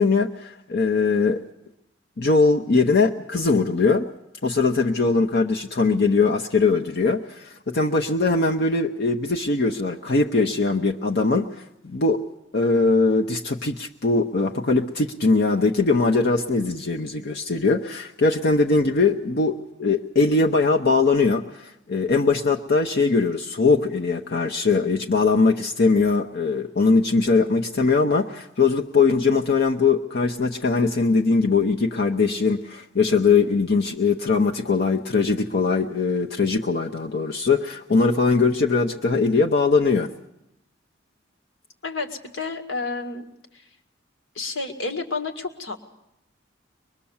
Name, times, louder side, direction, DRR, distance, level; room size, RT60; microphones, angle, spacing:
voice 1, 0.0-1.4 2.2-4.0 4.4-11.5 11.8-12.2 12.5-40.1, left 4 dB, 60° left, 2 dB, 0.9 m, -21 dB
voice 2, 41.8-43.2 43.5-43.6 44.4-45.8, left 3 dB, 80° left, 5 dB, 2.0 m, -30 dB
23.5 x 21.5 x 7.2 m, 0.82 s
head